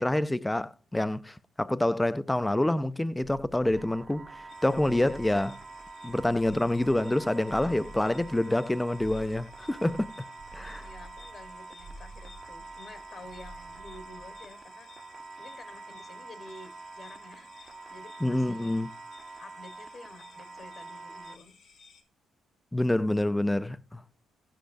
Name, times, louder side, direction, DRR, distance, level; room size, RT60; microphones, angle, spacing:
voice 1, 0.0-4.3 4.6-5.6 6.0-10.1 10.5-10.9 18.2-18.9 22.7-24.0, left 1 dB, 10° left, 0.3 m, -27 dB
sound 1, 3.8-21.4, right 3 dB, 35° right, 0.6 m, -46 dB
sound 2, 4.3-14.6, right 2 dB, 85° right, 0.8 m, -50 dB
sound 3, 4.5-22.0, left 5 dB, 65° left, 2.0 m, -57 dB
voice 2, 10.8-14.9 15.4-18.8 19.4-21.6, left 2 dB, 45° left, 1.2 m, -50 dB
11.5 x 6.0 x 2.5 m
cardioid pair, 90°, 0 cm